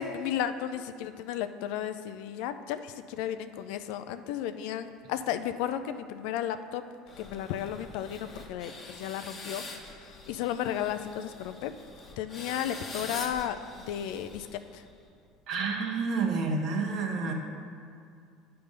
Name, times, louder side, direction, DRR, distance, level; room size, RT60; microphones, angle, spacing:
voice 1, 0.0-6.8 7.2-11.7 12.2-14.5 14.7-14.8, left 10 dB, 70° left, 10 dB, 0.3 m, -34 dB
sound 1, 7.1-15.1, left 2 dB, 30° left, 1.2 m, -44 dB
voice 2, 15.5-17.3, right 4 dB, 60° right, 1 dB, 1.1 m, -29 dB
9.2 x 3.4 x 5.2 m, 2.3 s
hypercardioid pair, 75°, 0 cm